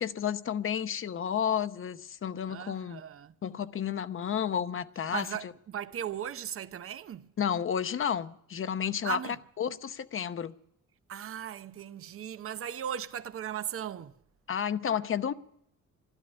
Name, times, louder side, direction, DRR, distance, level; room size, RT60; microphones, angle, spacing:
voice 1, 0.0-3.0 3.4-5.5 7.4-10.5 14.5-15.3, left 8 dB, 45° left, 0.9 m, -31 dB
voice 2, 2.5-3.3 5.1-7.2 9.0-9.4 11.1-14.1, right 10 dB, 45° right, 0.8 m, -37 dB
12.5 x 12.0 x 9.7 m
cardioid pair, 90°, 30 cm